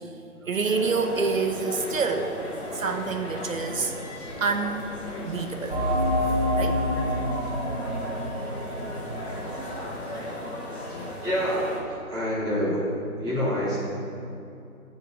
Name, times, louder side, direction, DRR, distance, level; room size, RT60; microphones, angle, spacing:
voice 1, 0.5-2.3 2.7-3.9 4.4-4.9 5.2-5.8 6.6-6.8, right 4 dB, 60° right, 5 dB, 0.7 m, -27 dB
sound 1, 0.6-11.8, left 1 dB, 45° left, 1.5 m, -37 dB
sound 2, 5.7-11.0, equal, 35° right, 1.8 m, -28 dB
voice 2, 11.2-12.8 13.2-13.8, equal, 10° right, -12 dB, 1.5 m, -27 dB
8.5 x 4.5 x 5.2 m, 2.7 s
figure-of-eight pair, 160°, 45 cm